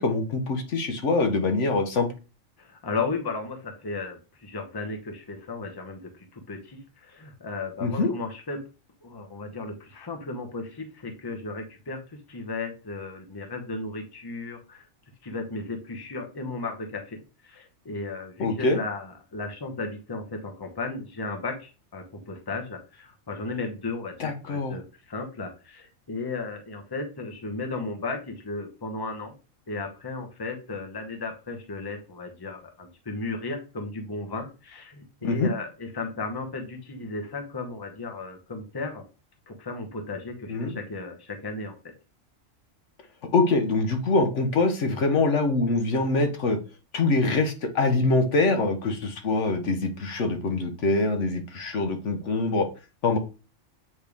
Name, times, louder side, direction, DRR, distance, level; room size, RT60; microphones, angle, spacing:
voice 1, 0.0-2.1 7.8-8.1 18.4-18.8 24.2-24.7 35.2-35.5 40.5-40.7 43.3-46.6 46.9-52.7 53.0-53.2, left 3 dB, 70° left, 6 dB, 1.2 m, -24 dB
voice 2, 2.6-8.6 9.0-12.0 12.3-14.9 15.2-29.3 29.7-39.0 39.5-41.7, left 3 dB, 20° left, 4 dB, 0.9 m, -35 dB
8.4 x 3.2 x 3.5 m, 0.32 s
omnidirectional pair, 1.3 m